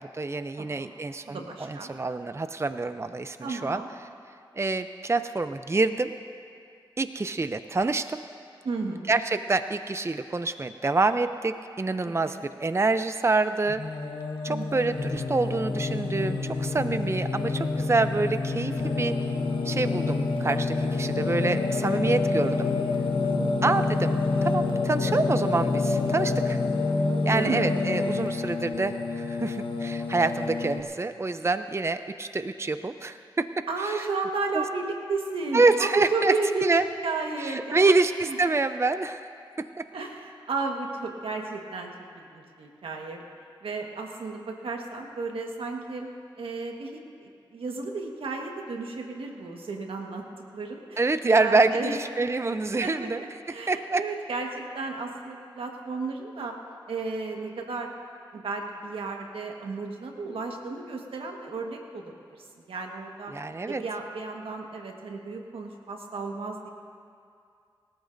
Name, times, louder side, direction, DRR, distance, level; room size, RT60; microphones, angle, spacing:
voice 1, 0.0-3.8 4.5-6.1 7.0-8.2 9.1-13.8 14.4-19.1 19.6-22.7 23.6-26.6 27.3-33.5 33.8-34.0 34.5-34.6 35.5-36.3 36.6-36.8 37.4-39.2 39.6-39.8 51.0-53.2 53.7-54.0 63.3-63.8, right 3 dB, 30° right, 10 dB, 0.5 m, -26 dB
voice 2, 0.6-0.9 1.3-1.9 3.4-3.9 8.6-9.1 12.0-12.5 14.5-14.8 23.2-23.6 27.2-27.7 33.7-36.7 37.0-37.9 38.2-38.4 39.9-41.9 42.2-43.2 43.6-46.1 46.4-50.2 50.5-52.0 52.8-56.5 56.9-57.9 58.3-62.0 62.7-63.3 63.7-66.7, right 3 dB, 90° right, 2 dB, 1.5 m, -33 dB
Singing, 13.7-30.8, left 3 dB, 70° left, 1.3 m, -27 dB
28.5 x 14.0 x 2.7 m, 2.4 s
cardioid pair, 45°, 9 cm